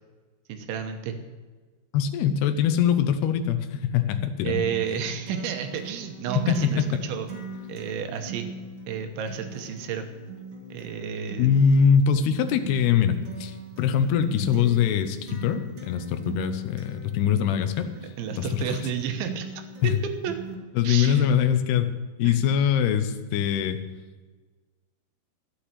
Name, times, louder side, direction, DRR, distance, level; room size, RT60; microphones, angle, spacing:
voice 1, 0.5-1.2 4.4-7.3 7.7-8.5 8.9-10.1 10.7-11.5 17.3-17.4 18.2-19.5 19.8-19.9 20.2-20.3 20.8-21.3 22.2-22.4, right 8 dB, 75° right, 6 dB, 3.3 m, -31 dB
voice 2, 1.9-4.6 6.4-7.0 11.4-17.9 18.4-18.8 19.8-20.0 20.8-21.9 22.2-23.8, left 8 dB, 75° left, 8 dB, 2.4 m, -23 dB
Acoustic guitar, 4.5-20.5, right 3 dB, 40° right, 2.2 m, -40 dB
12.0 x 8.7 x 8.3 m, 1.4 s
omnidirectional pair, 5.6 m